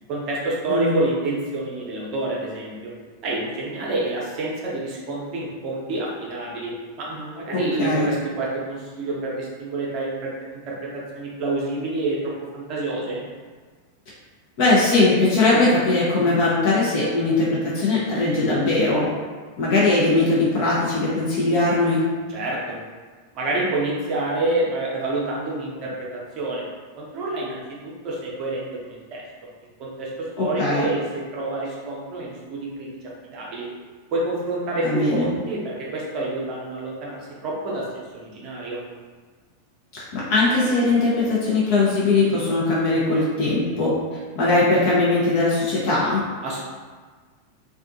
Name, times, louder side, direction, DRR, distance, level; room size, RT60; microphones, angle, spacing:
voice 1, 0.1-2.9 3.2-6.7 7.0-13.2 22.3-22.8 23.3-26.7 27.0-29.2 29.8-32.9 33.3-33.6 34.1-38.8 46.4-46.6, right 2 dB, 40° right, -4 dB, 0.6 m, -28 dB
voice 2, 7.5-8.1 14.6-19.0 19.6-22.0 30.4-30.9 34.8-35.3 39.9-43.9 44.4-46.2, left 2 dB, 45° left, -7 dB, 0.6 m, -20 dB
2.5 x 2.3 x 2.5 m, 1.5 s
figure-of-eight pair, 90°, 0 cm